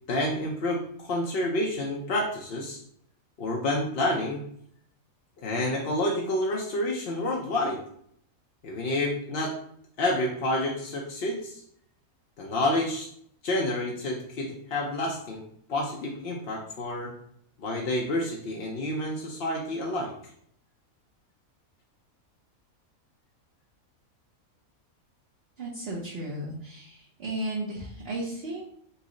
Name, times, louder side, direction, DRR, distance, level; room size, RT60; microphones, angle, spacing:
voice 1, 0.1-2.8 3.4-4.4 5.4-7.8 8.6-9.5 10.0-11.6 12.4-13.1 13.4-15.4 15.7-17.1 17.6-20.1, left 1 dB, 55° left, -1 dB, 0.7 m, -29 dB
voice 2, 25.6-28.7, right 1 dB, 50° right, -5 dB, 0.9 m, -34 dB
5.5 x 2.0 x 3.8 m, 0.67 s
omnidirectional pair, 1.5 m